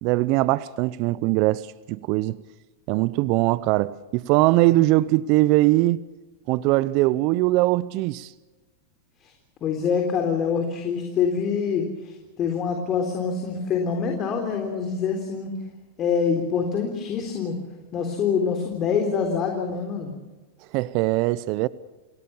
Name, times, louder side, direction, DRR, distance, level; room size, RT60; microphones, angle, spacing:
voice 1, 0.0-2.4 2.9-6.0 6.5-8.3 20.7-21.7, right 18 dB, 50° right, 0.7 m, -21 dB
voice 2, 9.6-15.5 16.0-17.6 17.9-20.1, left 6 dB, 35° left, 3.8 m, -25 dB
29.5 x 17.5 x 7.2 m
hypercardioid pair, 105°, 0 cm